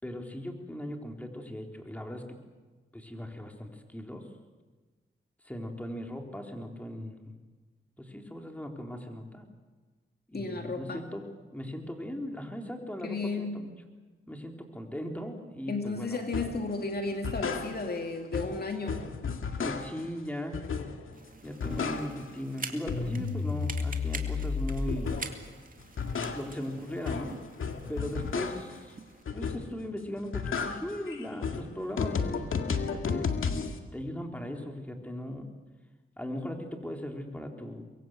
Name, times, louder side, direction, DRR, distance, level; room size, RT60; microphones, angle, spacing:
voice 1, 0.0-2.4 2.9-4.3 5.4-7.3 8.0-9.4 10.3-13.7 14.3-16.2 19.6-20.6 21.4-25.1 26.3-27.4 27.9-29.0 29.3-33.3 33.9-35.4 36.2-37.8, equal, 5° left, 2 dB, 3.9 m, -38 dB
voice 2, 10.3-11.0 13.0-13.6 15.7-19.1, left 3 dB, 50° left, 4 dB, 2.4 m, -33 dB
sound 1, 16.3-16.6 17.1-18.1 18.3-20.1 20.5-21.2 21.4-22.4 22.7-25.4 25.8-28.8 29.3-29.9 30.2-33.8, left 5 dB, 75° left, 2.0 m, -33 dB
sound 2, 21.1-29.2, right 4 dB, 40° right, 2.4 m, -46 dB
24.0 x 22.5 x 7.9 m, 1.3 s
cardioid pair, 75°, 21 cm